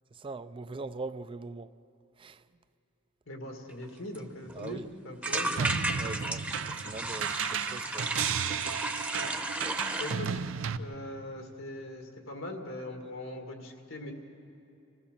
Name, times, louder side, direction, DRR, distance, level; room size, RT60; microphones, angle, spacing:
voice 1, 0.1-1.7 2.2-2.4 4.5-4.9 5.3-8.1, right 3 dB, 25° right, 0.4 m, -42 dB
voice 2, 3.3-5.5 9.2-9.3 9.9-10.4 10.8-14.1, left 1 dB, 90° left, 2.2 m, -41 dB
sound 1, 3.8-3.9 4.1-4.2 4.5-4.7 5.2-10.1, right 2 dB, 10° right, 0.8 m, -34 dB
sound 2, 5.6-10.8, right 7 dB, 90° right, 0.6 m, -33 dB
26.0 x 16.0 x 6.8 m
head